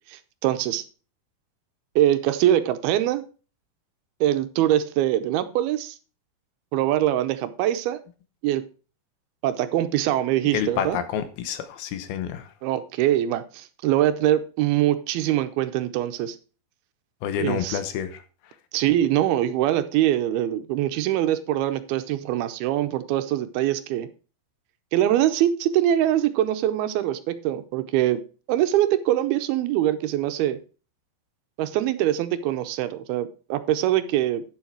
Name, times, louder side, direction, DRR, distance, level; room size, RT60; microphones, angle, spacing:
voice 1, 0.1-0.8 2.0-3.2 4.2-6.0 6.7-8.0 8.4-8.6 9.4-11.0 12.6-16.4 17.4-17.8 18.7-24.1 24.9-28.2 28.5-30.6 31.6-34.4, right 12 dB, 85° right, 10 dB, 2.6 m, -23 dB
voice 2, 10.5-12.4 17.2-18.1, left 9 dB, 80° left, 10 dB, 2.8 m, -28 dB
9.5 x 7.2 x 4.5 m, 0.35 s
omnidirectional pair, 4.5 m